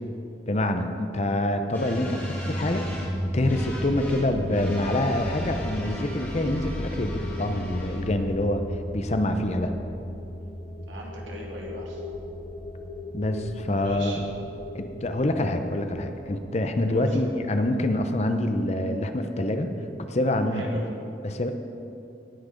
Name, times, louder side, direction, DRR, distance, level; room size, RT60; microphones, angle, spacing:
voice 1, 0.5-2.9 3.3-8.7 8.9-9.7 13.1-14.3 14.7-19.7 20.0-20.7 21.2-21.5, left 1 dB, 35° left, 7 dB, 0.6 m, -26 dB
sound 1, 1.7-19.2, equal, 10° left, 1.7 m, -36 dB
sound 2, 3.0-17.4, left 2 dB, 70° left, 1.1 m, -41 dB
voice 2, 10.9-12.0 13.8-14.2 16.9-17.1 20.5-20.9, right 2 dB, 85° right, -2 dB, 2.2 m, -39 dB
18.0 x 6.1 x 5.1 m, 2.7 s
head